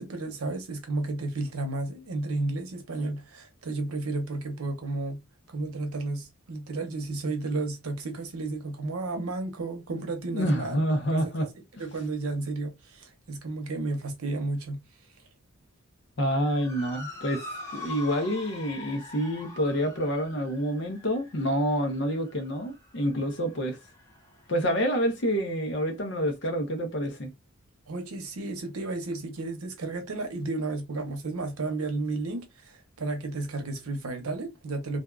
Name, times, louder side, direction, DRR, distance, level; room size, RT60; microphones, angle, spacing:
voice 1, 0.0-5.2 5.5-10.8 11.1-11.5 11.8-14.8 27.9-35.0, right 2 dB, 90° right, 0.8 m, -32 dB
voice 2, 10.3-11.5 16.2-17.4 17.7-23.8 24.5-27.3, equal, 55° left, 0.8 m, -27 dB
Motor vehicle (road) / Siren, 16.4-24.9, left 2 dB, 15° left, 0.7 m, -44 dB
2.5 x 2.3 x 2.3 m
head